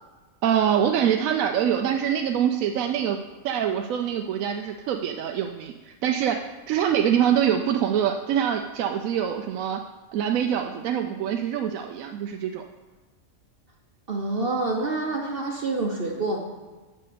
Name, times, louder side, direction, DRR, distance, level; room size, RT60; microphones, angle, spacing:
voice 1, 0.4-3.2 3.4-9.8 10.1-12.6, right 9 dB, 75° right, 5 dB, 1.0 m, -24 dB
voice 2, 14.1-16.4, right 2 dB, 50° right, 1 dB, 0.9 m, -27 dB
7.7 x 6.5 x 6.8 m, 1.3 s
omnidirectional pair, 1.5 m